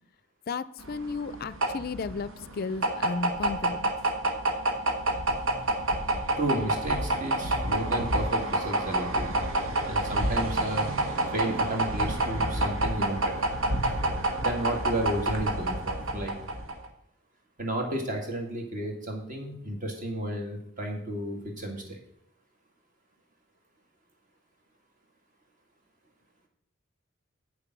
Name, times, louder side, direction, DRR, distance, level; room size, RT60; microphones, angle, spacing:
voice 1, 0.5-3.9, left 4 dB, 45° left, 16 dB, 0.4 m, -34 dB
sound 1, 0.8-16.9, right 1 dB, 75° right, 1.2 m, -28 dB
Bowed string instrument, 6.3-10.9, left 2 dB, 10° right, 1.9 m, -48 dB
voice 2, 6.4-9.3 9.8-10.9 11.3-13.5 14.4-16.3 17.6-22.0, right 1 dB, 40° right, 2 dB, 2.0 m, -32 dB
8.0 x 6.9 x 6.0 m, 0.67 s
head